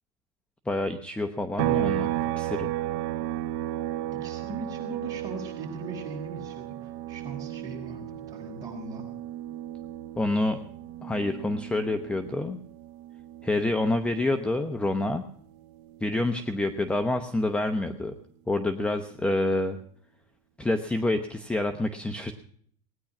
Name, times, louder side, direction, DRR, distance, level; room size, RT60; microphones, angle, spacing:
voice 1, 0.6-2.1 2.4-2.7 10.2-10.6 11.0-12.6 13.4-15.2 16.0-18.2 18.5-19.8 20.6-22.3, left 2 dB, 5° left, 7 dB, 0.8 m, -27 dB
sound 1, 1.6-15.1 15.5-17.7, right 14 dB, 60° right, 0.7 m, -34 dB
voice 2, 4.1-9.1, right 3 dB, 20° right, -1 dB, 6.9 m, -39 dB
19.0 x 10.0 x 5.9 m, 0.63 s
supercardioid pair, 140°, 16 cm